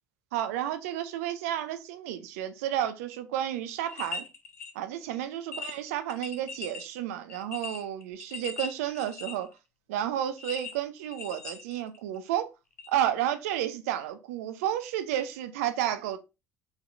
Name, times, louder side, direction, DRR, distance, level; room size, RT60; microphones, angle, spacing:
voice 1, 0.3-4.2 4.7-9.5 9.9-12.5 12.9-16.2, right 11 dB, 65° right, 0.6 m, -31 dB
sound 1, 3.7-4.7 5.1-5.2 5.5-6.9 7.3-9.5 10.4-12.2 12.8-12.9, left 5 dB, 80° left, 0.6 m, -40 dB
4.1 x 4.1 x 2.4 m
figure-of-eight pair, 55°, 8 cm